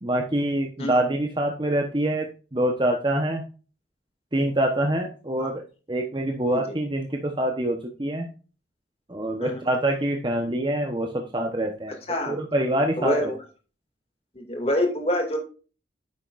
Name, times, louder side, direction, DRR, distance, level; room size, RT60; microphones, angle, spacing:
voice 1, 0.0-2.3 2.5-3.4 4.3-5.6 5.9-8.3 9.1-11.9 12.3-13.3, right 1 dB, 25° right, 3 dB, 1.0 m, -25 dB
voice 2, 13.0-13.4 14.4-15.4, left 1 dB, 35° left, 2 dB, 2.3 m, -26 dB
9.9 x 7.3 x 2.5 m, 0.35 s
head